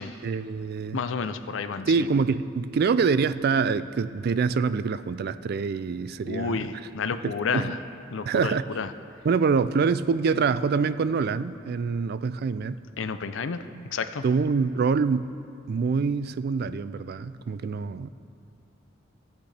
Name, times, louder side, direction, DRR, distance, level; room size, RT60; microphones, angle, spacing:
voice 1, 0.2-1.0 1.9-6.7 7.2-7.8 8.3-8.8 9.2-12.8 14.2-15.3 15.7-18.1, right 5 dB, 50° right, 14 dB, 0.3 m, -25 dB
voice 2, 0.9-1.9 6.3-7.8 8.1-8.9 13.0-13.6 13.9-14.2, left 5 dB, 70° left, 11 dB, 0.5 m, -30 dB
18.0 x 8.6 x 3.3 m, 2.4 s
head